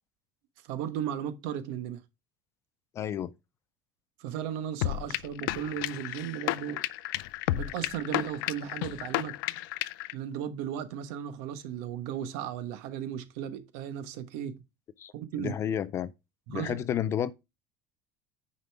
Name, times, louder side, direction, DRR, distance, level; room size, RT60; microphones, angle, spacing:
voice 1, 0.6-2.0 4.2-6.8 7.5-9.4 10.1-14.6 15.1-15.5 16.5-16.8, right 9 dB, 65° right, 1.2 m, -35 dB
voice 2, 3.0-3.3 15.0-15.1 15.4-16.1 16.5-17.3, left 9 dB, 25° left, 0.4 m, -31 dB
sound 1, 4.8-10.1, left 17 dB, 85° left, 0.4 m, -32 dB
9.5 x 5.3 x 3.5 m
cardioid pair, 175°, 11 cm